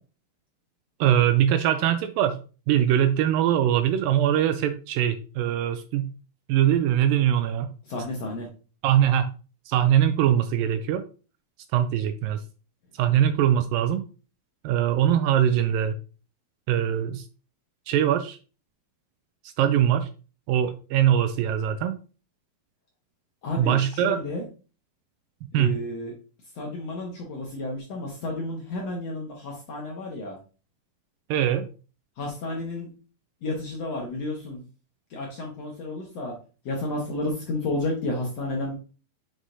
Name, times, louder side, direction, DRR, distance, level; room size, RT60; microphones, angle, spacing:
voice 1, 1.0-6.1 6.5-7.7 8.8-9.3 9.7-11.0 11.7-12.4 12.9-14.1 14.6-16.0 16.7-17.3 17.9-18.4 19.6-20.1 20.5-22.0 23.6-24.2 25.5-25.8 31.3-31.7, right 10 dB, 80° right, 10 dB, 2.1 m, -22 dB
voice 2, 7.9-8.5 23.4-24.4 25.5-26.1 26.5-30.4 32.2-32.9 33.4-34.6 35.1-36.3 36.6-38.7, left 2 dB, 65° left, -1 dB, 1.7 m, -31 dB
6.4 x 6.2 x 2.6 m, 0.36 s
omnidirectional pair, 4.2 m